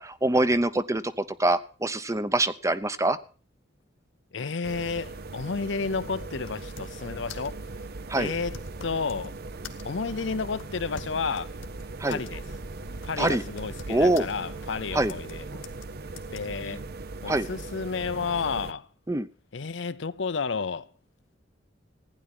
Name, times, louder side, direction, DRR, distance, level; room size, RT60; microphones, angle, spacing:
voice 1, 0.0-3.2 8.1-8.3 12.0-12.2 13.2-13.4 13.9-14.2 14.9-15.1 17.3-17.5 19.1-19.3, right 2 dB, 15° right, 0.7 m, -24 dB
voice 2, 4.3-7.6 8.2-9.4 9.8-11.5 12.0-12.4 13.0-15.5 16.3-16.8 17.2-18.9 19.5-20.9, left 5 dB, 65° left, 0.6 m, -31 dB
sound 1, 4.6-18.7, right 3 dB, 50° right, 0.7 m, -40 dB
sound 2, 6.1-7.0 7.3-7.6 8.2-9.3 9.6-10.1 10.6-12.3 12.6-12.7 13.0-14.3 15.1-15.3 15.6-15.9 16.2-16.4, left 4 dB, 85° left, 1.8 m, -44 dB
Bird, 7.1-15.9, right 1 dB, 75° right, 1.4 m, -47 dB
15.5 x 10.0 x 6.0 m
head